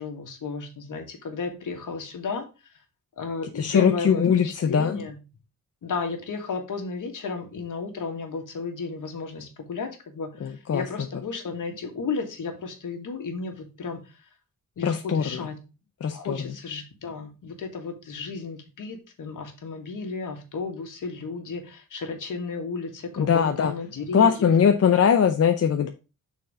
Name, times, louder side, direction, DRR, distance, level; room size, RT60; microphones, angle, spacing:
voice 1, 0.0-2.4 3.2-5.2 5.8-14.0 14.8-15.6 16.1-24.5, left 4 dB, 65° left, 4 dB, 1.8 m, -33 dB
voice 2, 3.5-5.0 10.4-10.8 14.8-15.4 16.0-16.5 23.2-23.7 24.1-25.9, left 7 dB, 45° left, 5 dB, 0.7 m, -21 dB
6.4 x 4.3 x 4.9 m, 0.30 s
wide cardioid pair, 125°, 33 cm